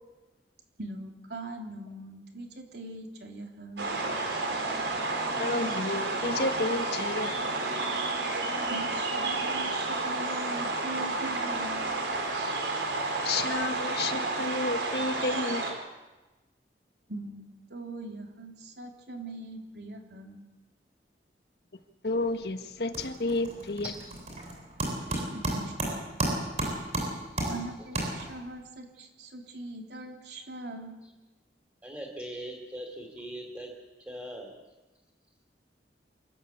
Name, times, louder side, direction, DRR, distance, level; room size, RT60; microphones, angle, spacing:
voice 1, 0.8-3.9 8.7-11.8 17.1-17.4 17.7-20.4 25.1-25.9 27.5-31.0, right 2 dB, 70° right, 3.6 m, -41 dB
sound 1, 3.8-15.7, right 3 dB, 90° right, 4.5 m, -31 dB
voice 2, 5.1-7.5 13.2-15.8 22.0-23.9, left 2 dB, 65° left, 1.5 m, -31 dB
sound 2, 22.1-22.4 22.7-28.6, right 1 dB, 40° right, 7.7 m, -33 dB
voice 3, 27.2-27.9 28.2-28.3 31.8-33.7 34.1-34.5, equal, 10° right, 3.2 m, -41 dB
27.5 x 13.5 x 8.7 m
head